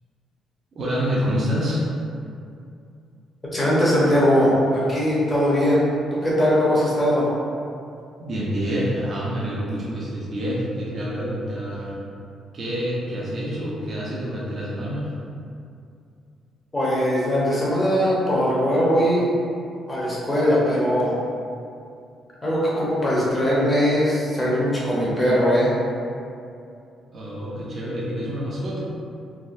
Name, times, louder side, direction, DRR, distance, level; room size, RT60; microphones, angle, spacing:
voice 1, 0.7-1.8 8.2-11.9 12.5-15.1 27.1-28.8, equal, 45° right, -7 dB, 0.6 m, -27 dB
voice 2, 3.5-5.8 6.1-7.3 16.7-19.3 19.9-21.2 22.4-25.7, equal, 25° left, -7 dB, 1.0 m, -20 dB
3.3 x 2.1 x 2.6 m, 2.5 s
cardioid pair, 90°, 0 cm